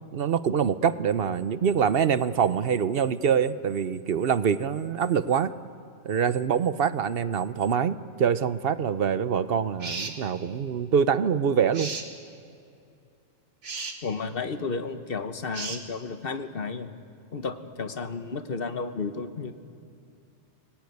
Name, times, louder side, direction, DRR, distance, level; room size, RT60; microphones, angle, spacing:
voice 1, 0.1-5.5 6.0-11.9, right 7 dB, 60° right, 14 dB, 0.9 m, -25 dB
sound 1, 9.8-10.2 11.7-12.1 13.6-14.0 15.5-15.8, right 4 dB, 85° right, 2.1 m, -34 dB
voice 2, 14.0-16.9 17.3-19.5, left 4 dB, 55° left, 9 dB, 1.3 m, -32 dB
25.5 x 19.0 x 9.4 m, 2.6 s
omnidirectional pair, 1.2 m